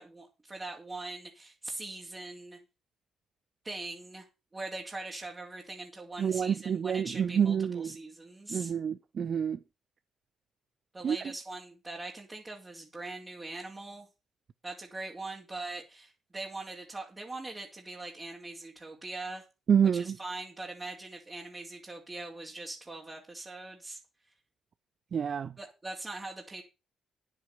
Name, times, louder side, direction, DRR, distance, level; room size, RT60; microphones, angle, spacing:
voice 1, 0.0-2.6 3.6-4.3 4.5-8.7 10.9-14.1 14.6-19.4 19.9-24.0 25.6-26.6, right 2 dB, 25° right, 3.1 m, -42 dB
voice 2, 6.2-8.0 8.5-9.6 11.0-11.2 19.7-20.2 25.1-25.5, right 7 dB, 50° right, 0.5 m, -28 dB
9.7 x 8.5 x 6.7 m
cardioid pair, 90°, 0 cm